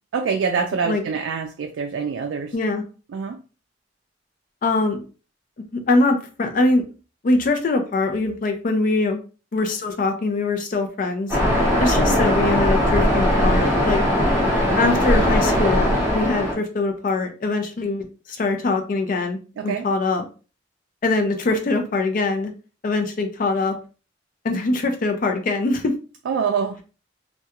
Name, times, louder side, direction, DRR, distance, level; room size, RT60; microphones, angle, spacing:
voice 1, 0.1-2.6 3.1-3.4 19.6-19.9 26.3-26.8, right 6 dB, 80° right, 4 dB, 0.3 m, -25 dB
voice 2, 2.5-2.8 4.6-5.0 5.9-6.8 7.2-9.2 9.5-11.4 11.8-14.0 14.8-20.2 21.0-22.5 22.8-23.8 24.4-25.9, left 3 dB, 45° left, 6 dB, 0.4 m, -22 dB
Waves surf, 11.3-16.5, equal, 15° right, 0.9 m, -19 dB
2.3 x 2.2 x 2.8 m, 0.34 s
head